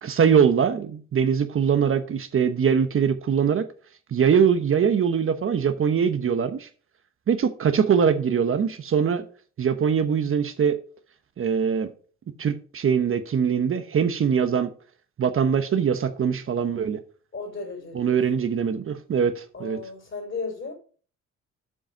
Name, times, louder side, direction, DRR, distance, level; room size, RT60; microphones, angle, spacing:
voice 1, 0.0-3.7 4.1-6.7 7.3-9.2 9.6-10.8 11.4-11.9 12.4-14.7 15.2-17.0 17.9-19.8, right 7 dB, 45° right, 0.9 m, -22 dB
voice 2, 17.3-18.6 19.5-20.7, left 4 dB, 40° left, 4.4 m, -35 dB
7.3 x 5.4 x 6.1 m
cardioid pair, 90°, 30 cm